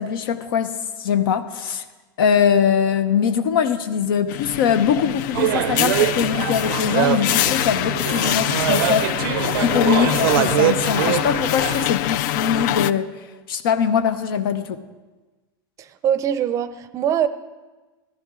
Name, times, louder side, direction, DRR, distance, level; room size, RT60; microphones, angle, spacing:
voice 1, 0.0-1.8 2.2-14.8, left 7 dB, 85° left, 11 dB, 0.9 m, -22 dB
sound 1, 4.3-12.9, left 13 dB, 60° left, 0.4 m, -24 dB
sound 2, 5.3-11.9, right 12 dB, 90° right, 0.5 m, -23 dB
voice 2, 15.8-17.3, right 9 dB, 25° right, 13 dB, 0.5 m, -22 dB
15.0 x 12.5 x 3.7 m, 1.3 s
supercardioid pair, 150°, 11 cm